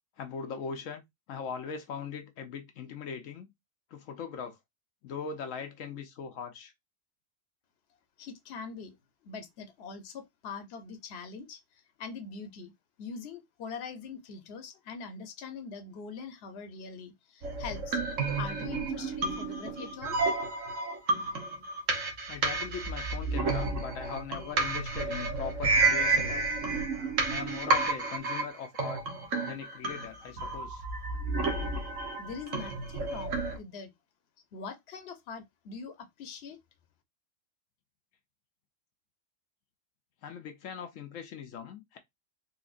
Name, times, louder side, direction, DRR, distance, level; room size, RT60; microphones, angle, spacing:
voice 1, 0.2-3.5 3.9-4.6 5.0-6.7 22.3-26.5 27.3-29.0 29.4-30.9 40.2-42.0, left 6 dB, 85° left, 1.1 m, -40 dB
voice 2, 8.2-9.0 9.2-12.7 13.0-18.0 18.3-20.2 32.2-33.9 34.5-36.6, left 5 dB, 55° left, 1.0 m, -43 dB
sound 1, 17.4-33.6, right 3 dB, 80° right, 1.4 m, -31 dB
3.9 x 2.5 x 2.5 m
omnidirectional pair, 1.3 m